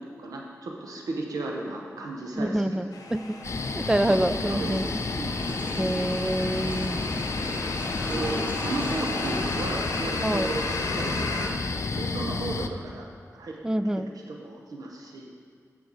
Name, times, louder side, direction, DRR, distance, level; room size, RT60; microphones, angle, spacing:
voice 1, 0.0-2.9 4.1-4.9 5.2-5.5 8.0-10.7 10.9-11.5 11.9-15.3, right 2 dB, 90° right, 0 dB, 0.8 m, -35 dB
voice 2, 2.4-3.4 3.7-4.9 5.8-7.1 10.2-10.5 13.6-14.1, right 1 dB, 10° right, 13 dB, 0.3 m, -26 dB
sound 1, 2.9-11.5, left 2 dB, 85° left, 0.8 m, -35 dB
sound 2, 3.4-12.7, left 3 dB, 55° left, 0.4 m, -31 dB
Water / Toilet flush, 4.5-10.7, equal, 30° right, 2.0 m, -39 dB
6.8 x 6.3 x 4.8 m, 2.1 s
cardioid pair, 50°, 6 cm